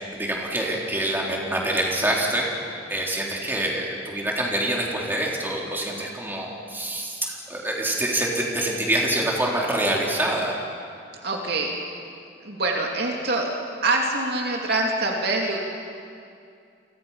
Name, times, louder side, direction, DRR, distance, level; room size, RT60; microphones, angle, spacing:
voice 1, 0.1-2.5 2.9-10.5, right 1 dB, 10° right, -3 dB, 3.8 m, -26 dB
voice 2, 11.2-11.7 12.4-13.5 13.8-15.6, right 2 dB, 60° right, 0 dB, 2.9 m, -24 dB
29.5 x 23.5 x 5.8 m, 2.4 s
head